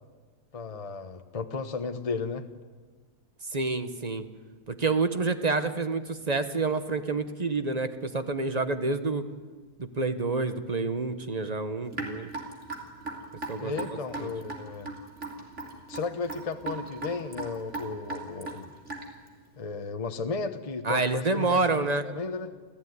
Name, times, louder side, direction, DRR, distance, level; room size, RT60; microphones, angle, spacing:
voice 1, 0.5-2.5 13.6-14.9 15.9-18.7 19.6-22.5, left 4 dB, 25° left, 7 dB, 1.1 m, -34 dB
voice 2, 3.5-4.3 4.7-9.2 10.0-12.3 13.5-13.7 14.2-14.3 20.8-22.0, right 3 dB, 30° right, 9 dB, 1.2 m, -28 dB
Raindrop / Drip, 11.9-19.3, right 3 dB, 45° right, 3.7 m, -37 dB
28.5 x 15.5 x 9.6 m, 1.4 s
omnidirectional pair, 1.7 m